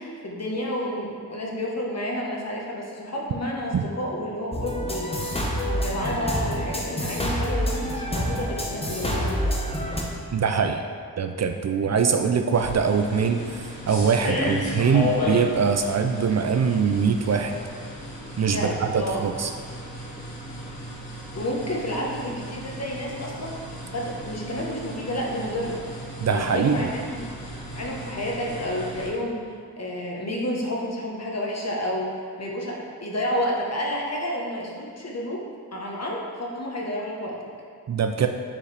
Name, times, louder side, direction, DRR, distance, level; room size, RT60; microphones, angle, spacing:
voice 1, 0.0-5.4 5.6-9.4 18.5-19.3 21.3-23.5 23.8-25.8 26.3-27.3 27.7-35.4 35.7-37.4, equal, 45° left, -2 dB, 1.3 m, -30 dB
sound 1, 4.5-10.0, equal, 15° left, 0.9 m, -27 dB
voice 2, 10.3-10.8 11.2-17.6 18.4-19.5 26.2-26.9 37.9-38.3, right 6 dB, 50° right, 6 dB, 0.4 m, -23 dB
sound 2, 12.5-29.1, left 1 dB, 85° left, 1.4 m, -34 dB
7.1 x 4.7 x 3.4 m, 2.2 s
cardioid pair, 65°, 36 cm